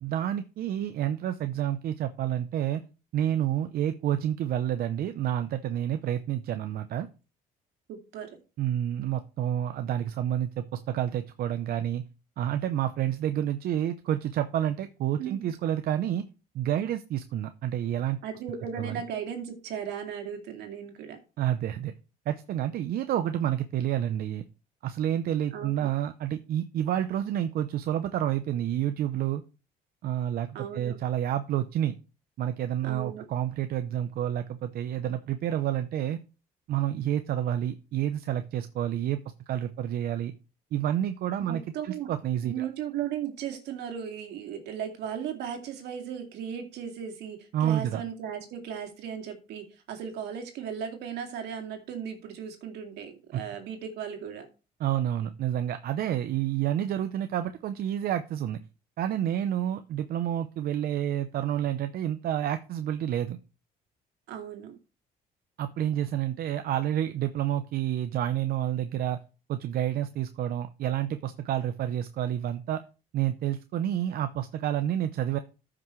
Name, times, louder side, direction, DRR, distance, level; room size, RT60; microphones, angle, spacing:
voice 1, 0.0-2.8 3.1-7.1 8.6-12.0 12.4-16.3 16.5-18.2 18.8-19.0 21.4-21.9 22.3-24.4 24.8-29.4 30.0-31.9 32.4-36.2 36.7-39.2 39.5-40.3 40.7-42.7 47.5-48.0 53.3-53.4 54.8-58.6 59.0-63.4 65.6-69.2 69.5-72.8 73.1-75.4, right 11 dB, 65° right, 9 dB, 0.7 m, -29 dB
voice 2, 7.9-8.4 15.2-15.5 18.2-21.2 25.5-25.9 30.5-31.0 32.8-33.2 41.5-42.1 42.4-54.5 64.3-64.8, right 8 dB, 80° right, 4 dB, 2.4 m, -36 dB
13.5 x 6.0 x 3.2 m, 0.33 s
cardioid pair, 110°, 17 cm